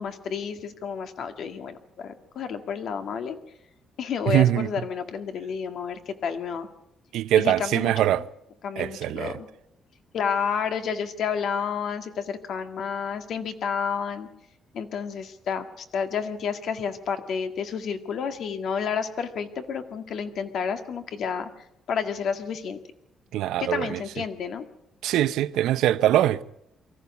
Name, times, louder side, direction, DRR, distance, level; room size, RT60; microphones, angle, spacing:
voice 1, 0.0-3.4 4.0-6.7 7.4-7.9 8.6-9.5 10.1-14.3 14.7-21.5 21.9-22.8 23.6-24.6, left 6 dB, 55° left, 1.9 m, -30 dB
voice 2, 4.3-4.7 7.1-8.2 8.8-9.4 23.3-24.0 25.0-26.4, right 12 dB, 90° right, 0.7 m, -22 dB
24.5 x 14.0 x 8.4 m
cardioid pair, 160°, 0 cm